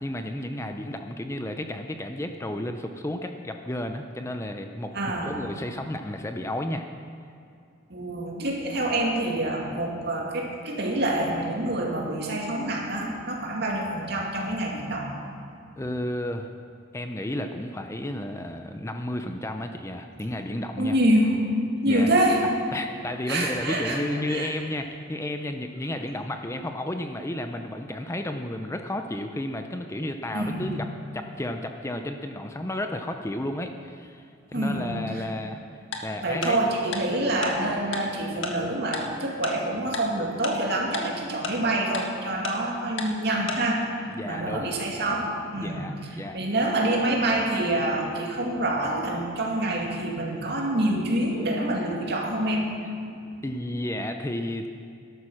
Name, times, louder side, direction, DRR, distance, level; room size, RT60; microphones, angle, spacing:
voice 1, 0.0-6.9 15.8-16.5 16.9-21.0 21.9-22.1 22.7-30.9 31.1-34.3 34.5-35.6 36.0-36.6 44.1-44.7 45.6-46.4 53.4-54.7, left 1 dB, 15° left, 6 dB, 0.6 m, -32 dB
voice 2, 4.9-5.4 7.9-15.1 20.8-21.4 21.8-22.4 23.3-24.0 24.3-24.5 30.3-30.7 34.5-35.2 36.2-43.9 44.2-45.8 46.1-52.7 53.0-53.1, right 1 dB, 55° right, -1 dB, 2.3 m, -26 dB
Tick-tock, 35.9-36.0 36.4-36.5 36.9-37.0 37.4-37.5 37.9-38.0 38.4-38.5 38.9-39.0 39.4-39.5 39.9-40.0 40.4-40.5 40.9-41.0 41.4-41.5 41.9-42.0 42.4-42.5 43.0-43.1 43.5-43.6, left 4 dB, 75° left, 1.6 m, -30 dB
13.0 x 12.0 x 6.3 m, 2.5 s
head